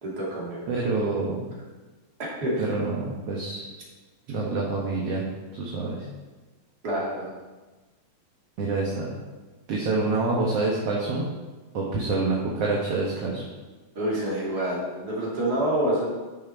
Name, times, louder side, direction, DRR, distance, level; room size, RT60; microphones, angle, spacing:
voice 1, 0.0-0.8 2.4-2.7 6.8-7.3 13.9-16.0, right 1 dB, 30° right, -5 dB, 2.8 m, -27 dB
voice 2, 0.7-1.5 2.6-3.6 4.3-5.2 5.5-6.0 8.6-9.1 9.7-11.2 11.7-13.4, right 3 dB, 55° right, -3 dB, 1.9 m, -27 dB
12.5 x 6.6 x 4.5 m, 1.2 s
omnidirectional pair, 4.1 m